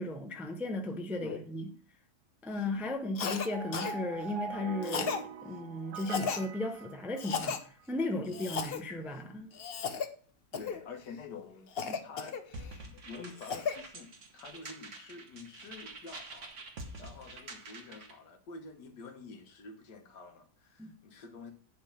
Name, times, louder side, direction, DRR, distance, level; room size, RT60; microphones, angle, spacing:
voice 1, 0.0-1.7 2.4-9.5 11.9-12.0 20.8-20.9, left 2 dB, ahead, 0.5 m, -36 dB
voice 2, 1.2-1.6 8.1-8.5 10.6-12.5 12.8-16.6 17.0-21.5, left 4 dB, 85° left, 1.7 m, -48 dB
Cough, 3.2-3.5 3.7-4.0 4.8-5.2 6.0-6.5 7.2-7.6 8.3-8.8 9.5-10.1 10.5-10.8 11.8-12.7 13.2-13.8, left 6 dB, 55° left, 0.7 m, -35 dB
sound 1, 3.3-7.6, right 6 dB, 75° right, 1.2 m, -43 dB
sound 2, 12.5-18.2, right 2 dB, 50° right, 1.3 m, -47 dB
10.5 x 3.5 x 5.6 m
omnidirectional pair, 1.8 m